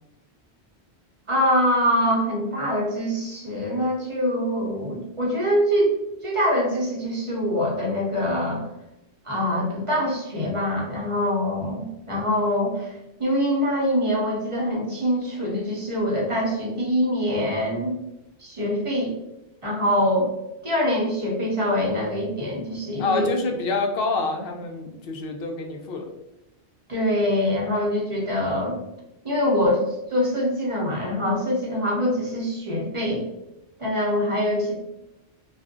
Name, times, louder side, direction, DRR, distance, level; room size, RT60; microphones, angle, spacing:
voice 1, 1.3-5.9 6.2-8.6 9.2-18.0 18.4-19.1 19.6-20.3 20.6-23.3 26.9-28.8 29.2-29.8 30.1-33.3 33.8-34.7, equal, 35° right, -4 dB, 0.7 m, -24 dB
voice 2, 23.0-26.1, left 3 dB, 65° left, 3 dB, 0.7 m, -27 dB
2.5 x 2.1 x 3.5 m, 0.90 s
omnidirectional pair, 1.1 m